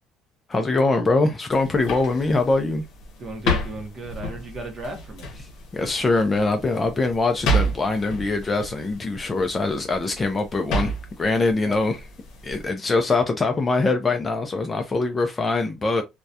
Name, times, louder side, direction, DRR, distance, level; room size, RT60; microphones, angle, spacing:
voice 1, 0.5-2.8 5.7-12.0 12.4-16.0, left 3 dB, 20° left, 0.3 m, -23 dB
sound 1, 1.5-12.7, right 1 dB, 65° left, 0.8 m, -31 dB
voice 2, 3.2-5.3 11.6-12.0, right 2 dB, 25° right, 0.7 m, -36 dB
2.3 x 2.1 x 2.6 m
cardioid pair, 165°, 0 cm